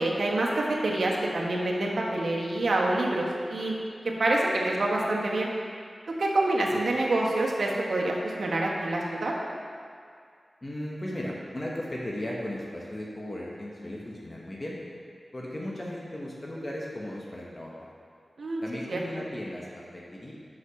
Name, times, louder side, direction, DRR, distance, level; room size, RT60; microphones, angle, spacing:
voice 1, 0.0-3.7 4.2-5.5 6.2-9.3 18.4-18.6 18.9-19.0, right 2 dB, 75° right, -2 dB, 1.2 m, -26 dB
voice 2, 10.6-14.8 15.3-17.9 18.6-20.3, left 1 dB, 35° left, -4 dB, 1.2 m, -36 dB
5.9 x 5.6 x 5.8 m, 2.2 s
cardioid pair, 45°, 0 cm